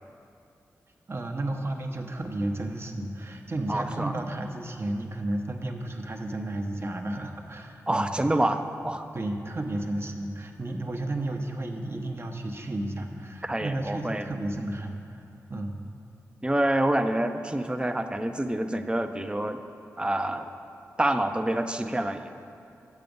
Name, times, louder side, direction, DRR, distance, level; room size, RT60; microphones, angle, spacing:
voice 1, 1.1-8.1 9.1-15.2 15.5-15.8, right 1 dB, 40° right, 3 dB, 0.9 m, -32 dB
voice 2, 3.7-4.1 7.9-9.1 13.4-14.3 16.4-19.6 20.0-20.5 21.0-22.3, right 1 dB, 15° right, 8 dB, 0.5 m, -27 dB
8.3 x 6.0 x 5.2 m, 2.6 s
cardioid pair, 50°, 6 cm